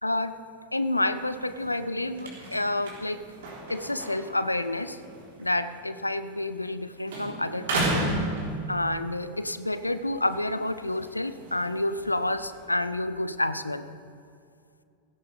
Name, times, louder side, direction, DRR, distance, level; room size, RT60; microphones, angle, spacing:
voice 1, 0.0-0.3 0.7-3.2 3.7-5.0 5.4-8.1 8.7-13.9, left 1 dB, 85° left, 13 dB, 0.5 m, -29 dB
sound 1, 1.2-6.8 7.1-9.1 9.6-12.6, right 1 dB, 55° right, 3.8 m, -35 dB
16.5 x 15.5 x 3.5 m, 2.4 s
figure-of-eight pair, 90°, 0 cm